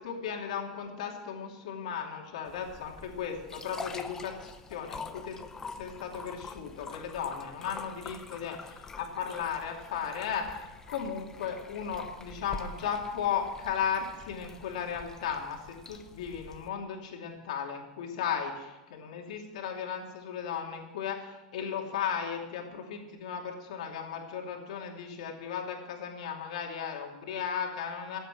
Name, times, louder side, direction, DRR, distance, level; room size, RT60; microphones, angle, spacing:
voice 1, 0.0-5.4 5.7-28.2, left 7 dB, 85° left, 1 dB, 2.7 m, -36 dB
sound 1, 2.5-16.7, left 4 dB, 15° left, 0.7 m, -46 dB
16.0 x 8.2 x 7.8 m, 1.1 s
supercardioid pair, 155°, 4 cm